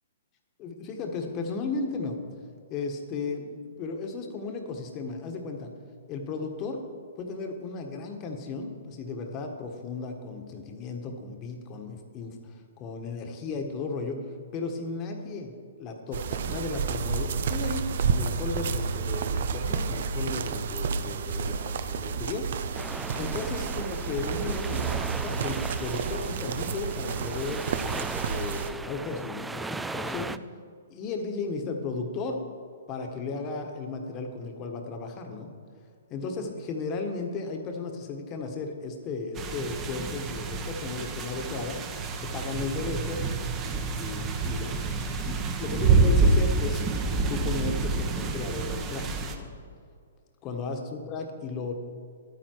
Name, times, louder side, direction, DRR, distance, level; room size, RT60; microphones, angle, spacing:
voice 1, 0.6-2.2 2.7-5.7 6.1-6.8 7.2-14.2 14.5-15.5 15.8-22.5 23.2-27.6 28.0-30.4 30.9-32.4 32.9-35.5 36.1-41.8 42.2-43.3 44.0-44.7 45.2-46.8 47.3-49.1 49.3-49.5 50.4-51.7, left 4 dB, 30° left, 4 dB, 1.4 m, -35 dB
sound 1, 16.1-28.7, right 6 dB, 60° right, 0.7 m, -30 dB
sound 2, 22.7-30.4, right 3 dB, 5° right, 0.3 m, -38 dB
sound 3, 39.4-49.3, right 3 dB, 25° right, 1.1 m, -27 dB
11.5 x 9.5 x 4.6 m, 2.2 s
hypercardioid pair, 130°, 0 cm